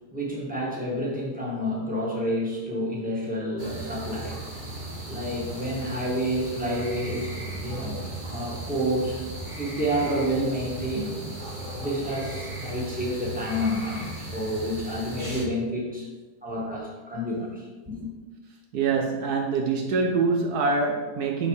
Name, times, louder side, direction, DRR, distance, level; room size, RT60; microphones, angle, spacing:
voice 1, 0.1-4.5 5.1-11.2 11.8-16.1 16.4-18.1, equal, 5° right, -5 dB, 1.7 m, -29 dB
sound 1, 3.6-15.4, right 1 dB, 30° right, 1.6 m, -36 dB
voice 2, 18.7-21.5, right 4 dB, 75° right, 3 dB, 1.2 m, -25 dB
7.4 x 4.7 x 4.8 m, 1.2 s
omnidirectional pair, 1.8 m